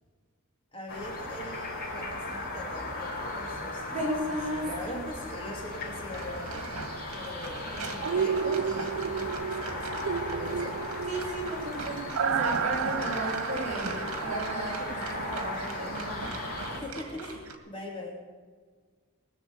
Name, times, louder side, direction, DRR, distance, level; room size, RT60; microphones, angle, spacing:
voice 1, 0.7-6.8 7.1-10.8 16.7-18.2, left 1 dB, 25° left, -1 dB, 2.8 m, -42 dB
sound 1, 0.9-16.8, left 2 dB, 45° left, 4.0 m, -37 dB
voice 2, 3.9-5.0 7.6-7.9 11.1-16.8, right 1 dB, 35° right, -3 dB, 5.1 m, -35 dB
sound 2, 6.1-17.5, right 3 dB, 80° right, 1.9 m, -41 dB
sound 3, 8.0-15.9 16.2-16.3, right 7 dB, 60° right, 0.4 m, -32 dB
20.5 x 6.9 x 8.9 m, 1.5 s
head